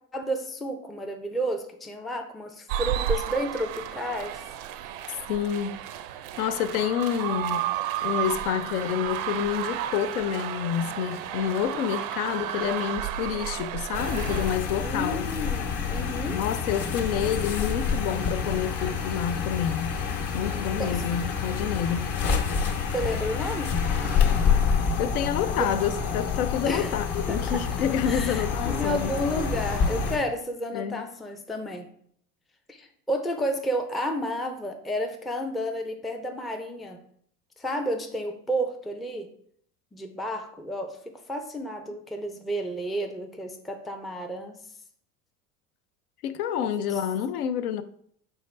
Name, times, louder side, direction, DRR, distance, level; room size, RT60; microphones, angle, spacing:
voice 1, 0.1-4.4 14.8-16.4 20.8-21.0 22.9-24.3 25.4-25.7 26.6-26.9 27.3-27.6 28.1-31.9 32.7-37.0 37.6-39.3 39.9-44.6, equal, ahead, 0.3 m, -31 dB
sound 1, 2.7-14.6, right 11 dB, 60° right, 0.5 m, -32 dB
voice 2, 5.3-5.8 6.4-7.6 8.0-15.2 16.3-20.0 20.3-22.1 25.0-29.1 30.7-31.0 46.2-47.8, left 9 dB, 75° left, 0.5 m, -28 dB
sound 2, 13.9-30.2, left 6 dB, 50° left, 1.0 m, -27 dB
4.6 x 3.4 x 3.2 m
hypercardioid pair, 75°, 44 cm